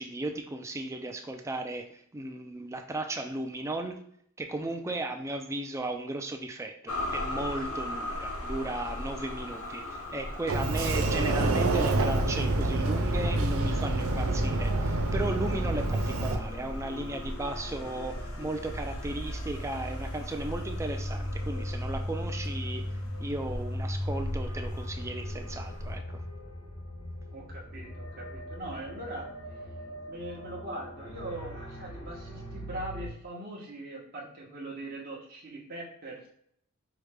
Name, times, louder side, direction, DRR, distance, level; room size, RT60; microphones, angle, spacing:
voice 1, 0.0-4.0 4.4-26.2, right 2 dB, 15° right, 5 dB, 0.3 m, -36 dB
sound 1, 6.9-26.0, left 1 dB, 65° left, 0.7 m, -40 dB
Sliding door, 10.5-16.4, right 2 dB, 75° right, 0.5 m, -27 dB
sound 2, 13.2-33.1, equal, 85° left, 1.0 m, -39 dB
voice 2, 27.3-29.6 30.1-36.3, right 1 dB, 45° right, -5 dB, 0.8 m, -41 dB
4.8 x 2.1 x 3.3 m, 0.67 s
head